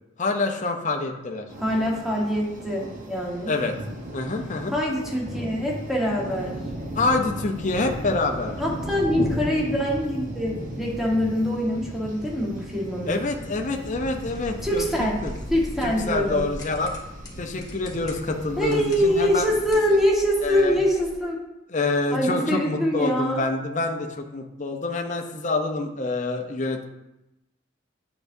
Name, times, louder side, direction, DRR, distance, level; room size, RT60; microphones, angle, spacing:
voice 1, 0.2-1.5 3.5-3.7 4.1-4.7 6.9-8.6 13.1-15.3 15.8-16.9 17.4-19.5 19.9-20.0 20.4-20.8 21.7-26.8, left 3 dB, 40° left, 3 dB, 0.7 m, -26 dB
sound 1, 1.5-19.6, right 1 dB, 40° right, 1.0 m, -36 dB
voice 2, 1.6-3.5 4.7-6.6 8.6-13.2 14.6-15.2 15.5-16.4 18.6-21.4 22.1-23.5, equal, ahead, -3 dB, 1.3 m, -24 dB
sound 2, 13.9-21.2, equal, 20° left, 1.1 m, -40 dB
9.1 x 4.8 x 2.7 m, 0.94 s
head